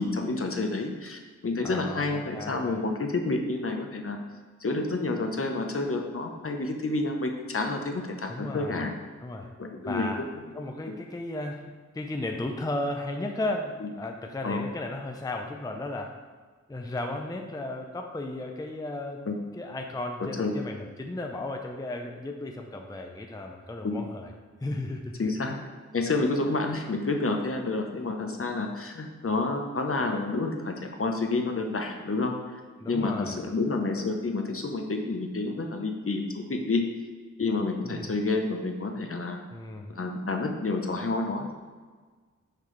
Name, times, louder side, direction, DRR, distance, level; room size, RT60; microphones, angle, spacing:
voice 1, 0.0-4.2 4.6-8.9 9.6-10.1 10.6-11.0 14.4-14.6 19.3-19.4 20.4-20.5 23.8-24.1 25.2-25.6 25.9-32.6 32.9-36.9 37.4-39.4 39.9-41.5, left 3 dB, 50° left, 3 dB, 0.7 m, -29 dB
voice 2, 1.6-2.8 8.3-8.9 9.2-9.5 9.9-10.2 10.5-16.1 16.7-19.2 19.5-24.3 24.6-25.3 32.8-33.4 37.8-38.1 39.5-39.9, left 2 dB, 15° left, 3 dB, 0.5 m, -35 dB
5.8 x 5.0 x 3.2 m, 1.5 s
wide cardioid pair, 75°, 30 cm